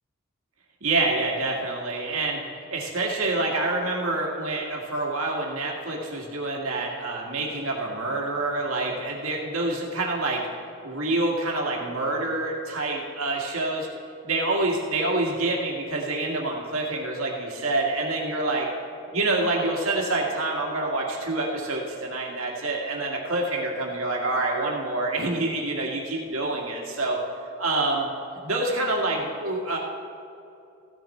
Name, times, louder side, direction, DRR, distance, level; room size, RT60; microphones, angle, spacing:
voice 1, 0.8-2.4 2.7-10.5 10.8-13.9 14.2-18.7 19.1-27.2 27.6-28.1 28.4-29.8, right 2 dB, 80° right, -1 dB, 2.1 m, -27 dB
15.5 x 10.5 x 4.4 m, 2.7 s
head